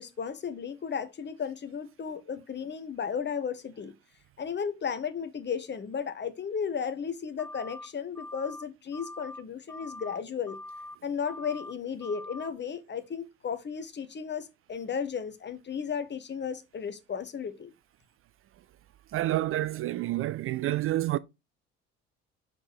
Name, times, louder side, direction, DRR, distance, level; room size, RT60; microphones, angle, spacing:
voice 1, 0.0-3.9 4.4-10.6 11.0-17.7, left 6 dB, 30° left, 1.2 m, -34 dB
sound 1, 7.4-7.9 8.1-8.6 8.9-9.4 9.7-10.2 10.5-11.0 11.2-11.7 12.0-12.5, left 2 dB, 5° left, 0.7 m, -43 dB
voice 2, 19.1-21.2, right 15 dB, 40° right, 0.4 m, -28 dB
6.0 x 5.3 x 4.4 m
figure-of-eight pair, 55°, 34 cm